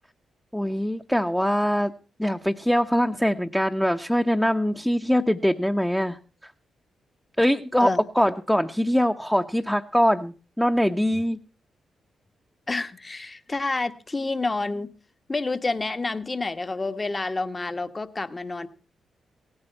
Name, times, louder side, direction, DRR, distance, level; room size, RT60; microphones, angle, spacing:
voice 1, 0.5-1.9 2.2-6.2 7.4-11.4, equal, 5° left, 5 dB, 0.8 m, -23 dB
voice 2, 12.7-14.9 15.3-18.7, left 3 dB, 30° left, 11 dB, 1.2 m, -29 dB
17.0 x 9.7 x 5.5 m, 0.36 s
hypercardioid pair, 40°, 0 cm